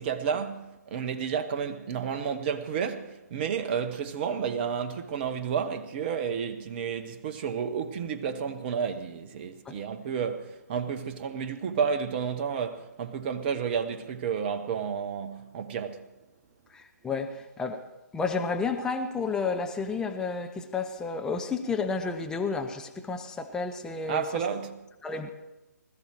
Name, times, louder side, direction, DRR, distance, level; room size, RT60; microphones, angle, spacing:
voice 1, 0.0-16.1 24.1-24.8, right 7 dB, 30° right, 1.1 m, -31 dB
voice 2, 16.7-17.8 18.1-24.3 25.0-25.3, left 4 dB, 5° left, 0.9 m, -31 dB
20.5 x 13.5 x 4.6 m
figure-of-eight pair, 135°, 10 cm